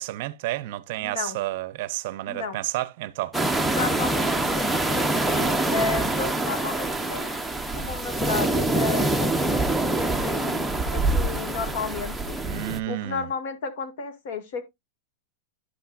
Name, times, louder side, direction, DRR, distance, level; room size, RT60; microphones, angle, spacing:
voice 1, 0.0-3.7 12.4-13.3, right 16 dB, 55° right, 0.6 m, -31 dB
voice 2, 1.0-1.4 2.3-2.6 3.7-7.3 7.7-12.4 12.9-14.6, left 4 dB, 60° left, 2.0 m, -33 dB
sound 1, 3.3-12.8, right 2 dB, ahead, 0.7 m, -25 dB
11.5 x 5.7 x 2.4 m
supercardioid pair, 155°, 0 cm